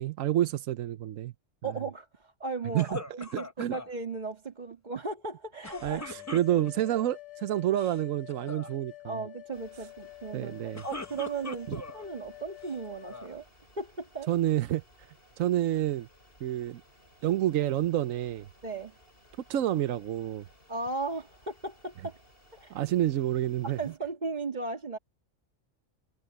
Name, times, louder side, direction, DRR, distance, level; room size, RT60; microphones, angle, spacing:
voice 1, 0.0-1.3 2.7-3.0 3.6-3.7 5.8-9.2 10.3-10.8 11.7-11.8 14.3-14.8 15.4-16.1 16.4-16.8 17.2-18.5 19.5-20.5 22.7-23.8, right 12 dB, 85° right, 1.1 m, -28 dB
voice 2, 1.6-6.1 9.0-13.5 13.8-14.3 18.6-19.0 20.7-22.2 22.5-22.7 23.6-25.0, right 3 dB, 35° right, 1.9 m, -36 dB
sound 1, 2.8-3.9 5.6-6.9 7.6-8.0 8.3-8.7 10.5-12.0 12.6-13.4, left 2 dB, 15° left, 0.7 m, -41 dB
sound 2, 5.7-13.3, left 18 dB, 65° left, 2.8 m, -48 dB
sound 3, 9.5-24.0, equal, 45° left, 6.7 m, -60 dB
omnidirectional pair, 1.3 m